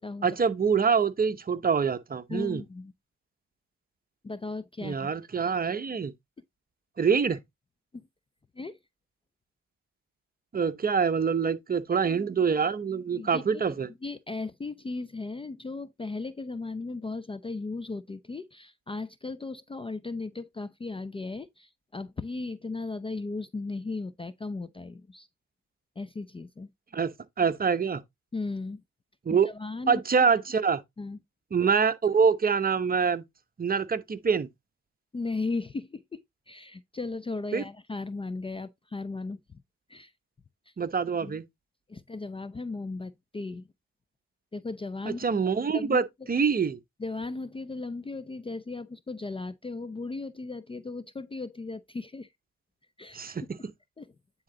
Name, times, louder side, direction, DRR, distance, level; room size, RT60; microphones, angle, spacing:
voice 1, 0.2-2.6 4.8-6.1 7.0-7.4 10.5-13.9 26.9-27.1 27.4-28.0 29.3-29.5 29.9-30.8 31.5-33.2 33.6-34.5 37.5-37.6 40.8-41.4 45.2-46.0 46.3-46.8 53.1-53.4, right 6 dB, 30° right, 0.9 m, -25 dB
voice 2, 2.3-2.9 4.2-5.1 7.9-8.1 8.5-8.8 13.2-13.6 14.0-25.3 26.0-26.7 28.3-28.8 29.5-30.3 31.0-31.2 35.1-39.6 39.9-40.1 40.7-40.8 41.2-41.4 41.9-43.7 44.5-45.2 45.7-46.3 47.0-52.3 53.0-53.3 54.0-54.1, left 3 dB, 20° left, 0.5 m, -36 dB
9.6 x 3.8 x 3.8 m
cardioid pair, 90°, 30 cm